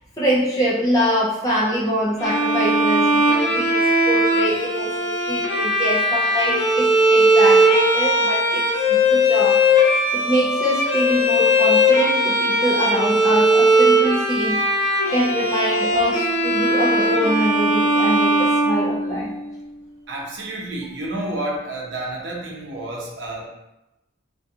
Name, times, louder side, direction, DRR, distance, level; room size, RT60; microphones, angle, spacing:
voice 1, 0.2-9.6 10.1-14.6 15.1-19.3, equal, 15° left, -5 dB, 0.4 m, -24 dB
Bowed string instrument, 2.2-19.4, equal, 75° left, 0.6 m, -18 dB
voice 2, 20.1-23.5, right 1 dB, 70° right, -3 dB, 0.6 m, -30 dB
2.4 x 2.2 x 2.7 m, 0.95 s
head